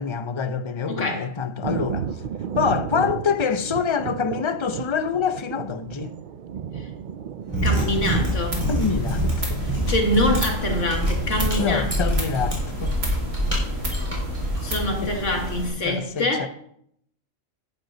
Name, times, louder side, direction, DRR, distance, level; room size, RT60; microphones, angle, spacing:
voice 1, 0.0-2.1 2.6-6.1 8.7-9.6 11.6-12.9 15.0-15.1 15.8-16.5, left 6 dB, 35° left, 0.5 m, -26 dB
voice 2, 0.9-1.3 6.8-6.9 7.6-8.7 9.6-12.2 14.6-16.5, left 1 dB, 65° left, 2.1 m, -25 dB
Thunder, 1.6-8.6, right 8 dB, 65° right, 0.5 m, -33 dB
Mechanisms, 7.4-14.6, right 1 dB, 25° right, 4.2 m, -26 dB
sound 1, 7.7-15.7, equal, 85° right, 3.3 m, -30 dB
11.0 x 9.2 x 3.9 m
omnidirectional pair, 1.3 m